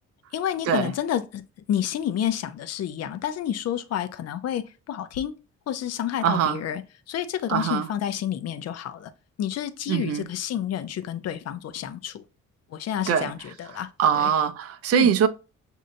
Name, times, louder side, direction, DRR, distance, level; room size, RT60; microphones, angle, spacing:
voice 1, 0.3-1.4 1.7-5.3 5.7-6.8 7.1-9.1 9.4-12.2 12.7-13.9 14.2-14.3 14.9-15.1, left 10 dB, 55° left, 0.6 m, -29 dB
voice 2, 6.2-6.6 7.5-7.9 9.9-10.3 13.1-13.3 13.7-15.3, right 8 dB, 50° right, 0.5 m, -23 dB
6.2 x 2.7 x 2.6 m
cardioid pair, 90°, 30 cm